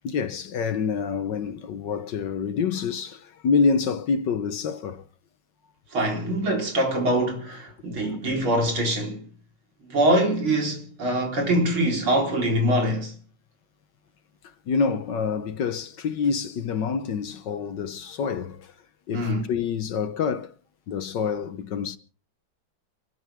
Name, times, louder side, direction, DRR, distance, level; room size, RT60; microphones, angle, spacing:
voice 1, 0.0-5.0 8.0-8.2 14.7-18.7 19.1-20.5 20.9-22.0, left 5 dB, 60° left, 1.5 m, -27 dB
voice 2, 5.9-9.2 9.9-13.1 19.1-19.4, right 1 dB, 75° right, 4.9 m, -24 dB
28.5 x 13.0 x 3.5 m
omnidirectional pair, 2.3 m